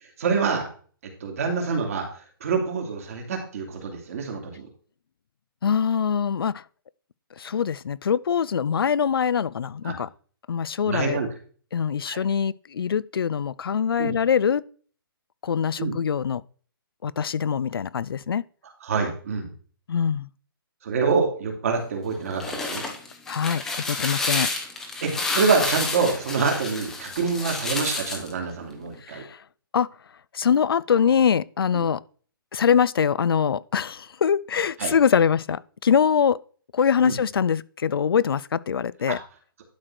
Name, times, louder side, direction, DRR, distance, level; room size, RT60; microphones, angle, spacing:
voice 1, 0.2-0.7 1.0-4.7 9.8-9.9 10.8-11.3 12.0-12.2 14.0-14.1 15.8-16.0 18.8-19.5 20.8-22.8 25.0-29.2 31.7-31.9 34.8-34.9 37.0-37.2 39.1-39.2, right 5 dB, 40° right, 2.7 m, -26 dB
voice 2, 5.6-6.6 7.4-10.1 10.5-11.2 11.7-14.7 15.4-16.4 17.0-18.4 19.9-20.3 23.3-24.5 29.0-29.4 29.7-29.9 30.3-32.0 32.5-36.4 36.7-39.2, left 7 dB, 75° left, 0.6 m, -23 dB
sound 1, 22.2-28.3, left 3 dB, 5° left, 0.8 m, -29 dB
11.5 x 4.9 x 6.0 m
hypercardioid pair, 180°, 12 cm